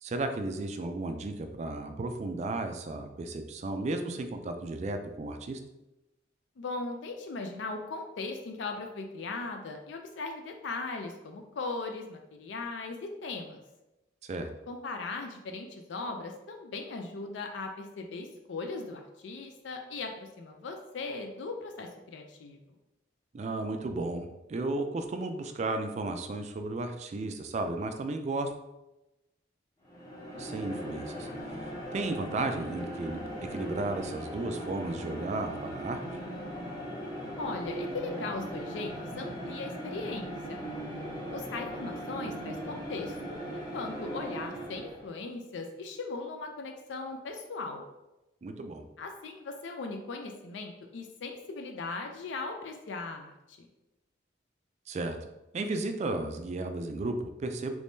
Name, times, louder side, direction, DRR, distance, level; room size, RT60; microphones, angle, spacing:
voice 1, 0.0-5.6 14.2-14.5 23.3-28.5 30.4-31.3 31.6-36.0 48.4-48.9 54.9-55.2 55.5-57.7, right 2 dB, 35° right, 7 dB, 0.3 m, -34 dB
voice 2, 6.6-13.6 14.7-22.6 37.4-40.6 41.3-47.8 49.0-53.7, left 3 dB, 75° left, 4 dB, 0.4 m, -38 dB
sound 1, 29.8-45.1, equal, 20° left, 0.7 m, -39 dB
3.5 x 3.0 x 2.6 m, 0.97 s
head